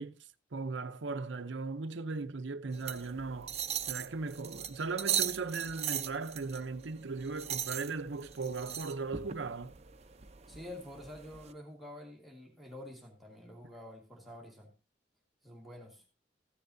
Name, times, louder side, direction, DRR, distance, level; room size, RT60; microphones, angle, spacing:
voice 1, 0.0-3.5 3.9-9.7, right 4 dB, 80° right, 0.7 m, -38 dB
sound 1, 2.7-11.5, right 9 dB, 35° right, 0.7 m, -39 dB
voice 2, 10.5-14.7 15.4-16.0, left 1 dB, ahead, 1.7 m, -48 dB
14.5 x 10.5 x 2.7 m
head